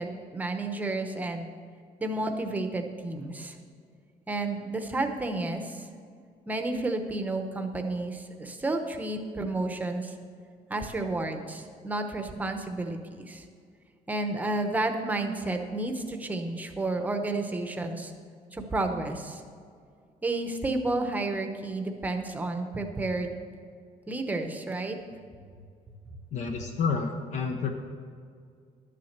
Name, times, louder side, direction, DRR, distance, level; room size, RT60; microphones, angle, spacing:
voice 1, 0.0-1.5 2.0-3.5 4.3-5.9 6.5-10.1 10.7-13.4 14.1-18.1 18.5-19.4 20.2-23.4 24.1-25.0, right 2 dB, 10° right, 5 dB, 0.8 m, -31 dB
voice 2, 26.3-27.7, left 5 dB, 60° left, 4 dB, 0.9 m, -29 dB
12.0 x 7.5 x 6.6 m, 2.2 s
cardioid pair, 180°, 14 cm